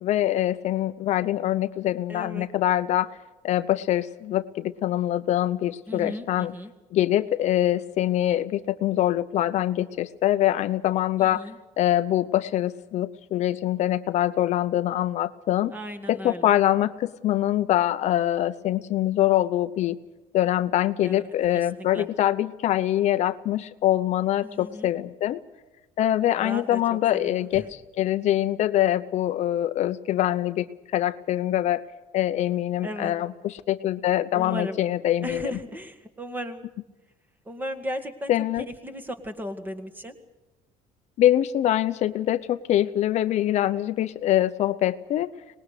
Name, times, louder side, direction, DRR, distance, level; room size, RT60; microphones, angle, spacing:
voice 1, 0.0-3.1 3.4-6.5 6.9-11.5 11.8-15.7 16.1-20.0 20.3-25.4 26.0-30.7 30.9-31.8 32.1-35.5 38.3-38.7 41.2-45.3, left 13 dB, 50° left, 11 dB, 0.8 m, -24 dB
voice 2, 2.1-2.5 5.9-6.7 11.2-11.6 15.7-16.5 21.0-21.2 21.5-21.7 21.9-22.1 24.4-24.9 26.4-27.7 32.8-33.1 34.3-34.8 35.2-36.6 37.5-38.3 38.6-40.2, equal, 10° right, 7 dB, 1.9 m, -35 dB
24.5 x 20.0 x 6.7 m, 1.1 s
cardioid pair, 160°, 15 cm